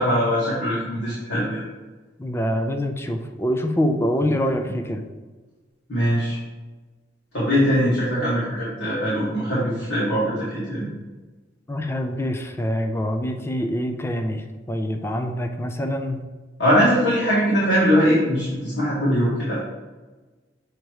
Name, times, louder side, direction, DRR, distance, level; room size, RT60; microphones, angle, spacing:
voice 1, 0.0-1.6 5.9-6.4 7.3-10.9 16.6-19.6, equal, 70° left, -9 dB, 1.8 m, -21 dB
voice 2, 2.2-5.1 11.7-16.2, equal, 15° left, 4 dB, 0.5 m, -25 dB
6.6 x 3.0 x 4.7 m, 1.3 s
head